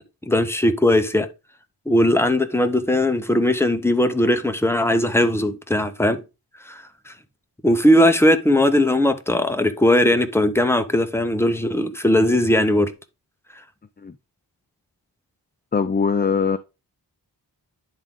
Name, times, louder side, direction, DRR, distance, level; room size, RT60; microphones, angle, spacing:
voice 1, 0.3-1.3 1.9-6.2 6.7-7.1 7.6-12.9, left 1 dB, 5° left, 0.8 m, -19 dB
voice 2, 15.7-16.6, left 5 dB, 25° left, 0.4 m, -21 dB
10.5 x 3.6 x 3.7 m
wide cardioid pair, 80°, 43 cm